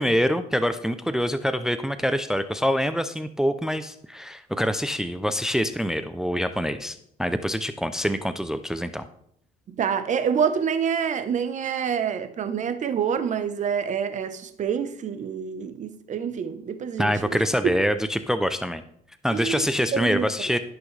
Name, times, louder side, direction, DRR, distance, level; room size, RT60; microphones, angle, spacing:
voice 1, 0.0-9.1 17.0-18.8 19.2-20.6, equal, 5° right, 0.5 m, -25 dB
voice 2, 9.7-17.4 17.6-17.7 19.3-20.3, right 7 dB, 45° right, 0.9 m, -27 dB
16.0 x 6.1 x 3.3 m
cardioid pair, 110°, 17 cm